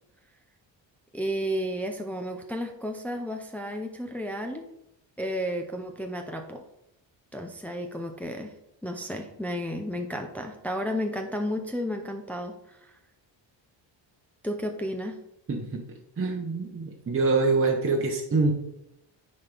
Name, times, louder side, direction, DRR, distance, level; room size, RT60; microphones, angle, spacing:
voice 1, 1.1-4.7 5.2-6.6 7.3-8.5 8.8-12.9 14.4-15.2, equal, 5° left, 3 dB, 0.6 m, -32 dB
voice 2, 15.5-15.8 16.2-18.5, right 3 dB, 30° right, 0 dB, 1.0 m, -25 dB
9.6 x 4.3 x 3.5 m, 0.82 s
cardioid pair, 115°, 46 cm